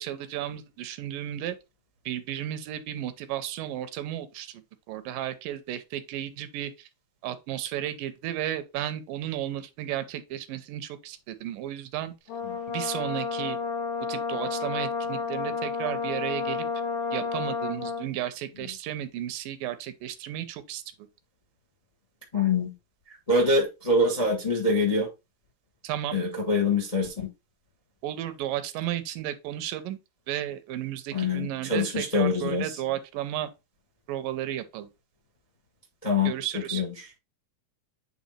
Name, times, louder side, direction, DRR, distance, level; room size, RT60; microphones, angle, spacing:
voice 1, 0.0-1.6 2.1-6.9 7.2-12.1 12.7-13.6 14.1-16.7 17.1-20.8 25.8-26.2 28.0-30.0 30.3-33.5 34.1-34.9 36.2-36.8, right 12 dB, 80° right, 2.4 m, -33 dB
Brass instrument, 12.3-18.1, left 4 dB, 70° left, 3.9 m, -31 dB
voice 2, 22.3-22.7 23.3-25.1 26.1-27.3 31.1-32.8 36.0-36.9, left 2 dB, 25° left, 0.8 m, -25 dB
8.4 x 3.5 x 4.2 m
omnidirectional pair, 3.9 m